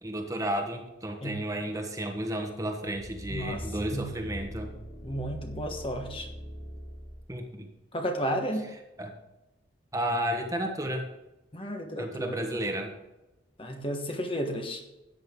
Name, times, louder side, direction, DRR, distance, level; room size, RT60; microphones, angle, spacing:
voice 1, 0.0-4.8 7.3-7.7 9.0-9.1 9.9-11.1 12.0-13.0, right 1 dB, 15° right, 3 dB, 1.2 m, -32 dB
sound 1, 2.9-7.2 7.7-7.8, equal, 60° left, 4.8 m, -41 dB
voice 2, 3.3-3.6 3.9-4.1 5.0-6.3 7.9-8.6 11.5-12.6 13.6-14.8, equal, 30° left, 4 dB, 1.3 m, -33 dB
13.5 x 9.0 x 3.8 m, 0.98 s
head